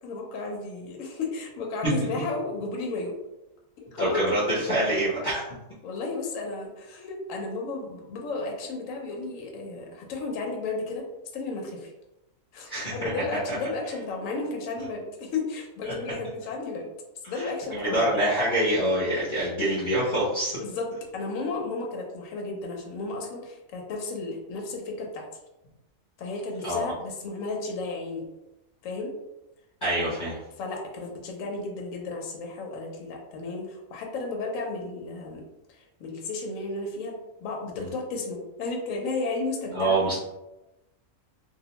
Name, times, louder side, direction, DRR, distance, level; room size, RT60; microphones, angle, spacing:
voice 1, 0.0-3.2 3.8-4.2 5.8-11.0 11.3-11.9 12.5-16.9 17.3-18.2 20.6-20.9 21.1-25.3 26.2-28.3 28.8-29.1 30.6-40.2, left 3 dB, 75° left, 0 dB, 0.9 m, -33 dB
voice 2, 4.0-5.4 12.7-13.5 17.2-20.6 26.6-26.8 29.8-30.4 37.8-37.9 39.7-40.2, right 1 dB, 45° left, -8 dB, 0.7 m, -26 dB
2.5 x 2.1 x 2.8 m, 0.98 s
omnidirectional pair, 1.4 m